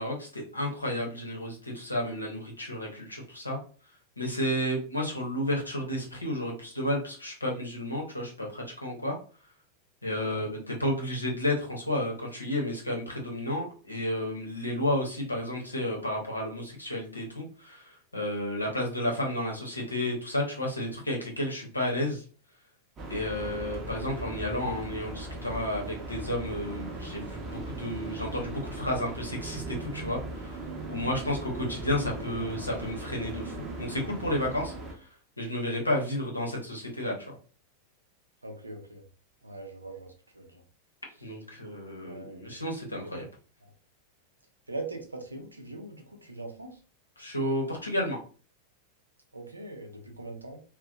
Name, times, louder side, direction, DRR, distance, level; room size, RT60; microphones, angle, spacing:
voice 1, 0.0-3.6 4.2-9.2 10.0-22.2 23.1-30.6 30.9-34.7 35.4-37.3 41.2-43.3 47.2-48.2, left 1 dB, 85° left, 0 dB, 0.7 m, -32 dB
sound 1, 23.0-34.9, right 2 dB, 25° right, 0.7 m, -38 dB
voice 2, 38.4-39.0 39.4-40.6 42.0-42.6 43.0-43.2 43.6-43.7 44.7-46.8 49.3-50.6, right 2 dB, 80° right, 3 dB, 0.5 m, -41 dB
2.6 x 2.1 x 2.3 m, 0.39 s
figure-of-eight pair, 90°, 0 cm